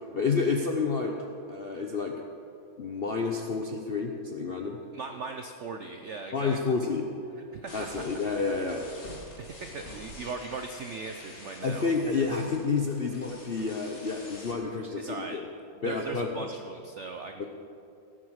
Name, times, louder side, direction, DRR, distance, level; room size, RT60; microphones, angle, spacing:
voice 1, 0.1-1.2 1.5-2.1 2.8-4.8 6.3-7.1 7.7-8.8 11.6-15.5 15.8-16.4 17.4-17.5, left 4 dB, 60° left, 2 dB, 0.6 m, -29 dB
voice 2, 4.9-6.6 7.5-8.2 9.4-11.9 15.0-15.4 15.8-17.4, right 4 dB, 80° right, 5 dB, 0.6 m, -39 dB
sound 1, 7.7-14.5, left 1 dB, 35° left, 2.1 m, -47 dB
17.0 x 7.6 x 6.4 m, 2.5 s
omnidirectional pair, 2.1 m